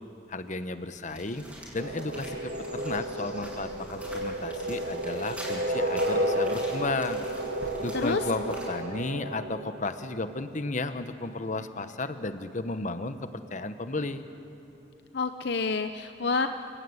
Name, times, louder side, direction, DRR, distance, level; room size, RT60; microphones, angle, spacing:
voice 1, 0.3-1.4 1.7-7.2 7.8-14.2, left 2 dB, 40° left, 10 dB, 1.1 m, -33 dB
sound 1, 1.1-8.6, equal, 10° right, 6.9 m, -44 dB
sound 2, 1.8-10.4, right 1 dB, 75° right, 1.8 m, -32 dB
voice 2, 7.9-8.2 15.1-16.5, left 4 dB, 65° left, 8 dB, 0.7 m, -28 dB
29.0 x 16.5 x 9.7 m, 2.9 s
head